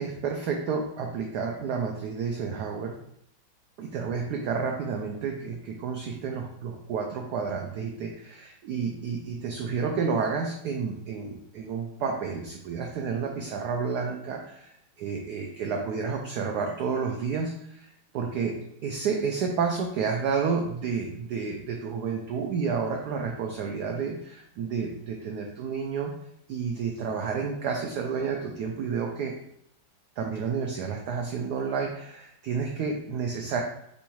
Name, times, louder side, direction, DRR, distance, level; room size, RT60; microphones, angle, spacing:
voice 1, 0.0-3.0 3.8-17.9 18.1-18.6 18.8-26.1 26.5-29.3 30.2-33.6, right 5 dB, 75° right, 2 dB, 0.9 m, -30 dB
6.9 x 2.3 x 3.1 m, 0.75 s
omnidirectional pair, 2.2 m